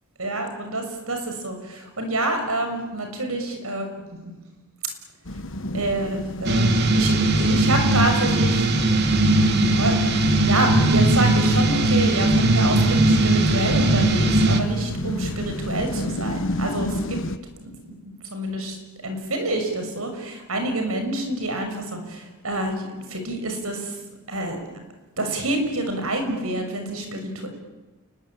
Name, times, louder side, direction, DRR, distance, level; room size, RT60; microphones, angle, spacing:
voice 1, 0.2-3.9 4.2-4.3 5.7-8.7 9.4-17.2 17.6-17.9 18.3-18.8 19.0-23.9 24.3-24.6 25.2-27.5, right 1 dB, 70° right, 5 dB, 6.6 m, -27 dB
sound 1, 5.2-17.4, left 1 dB, 60° left, 1.4 m, -32 dB
sound 2, 6.4-14.6, right 2 dB, 50° right, 2.4 m, -19 dB
29.0 x 21.5 x 8.9 m, 1.2 s
head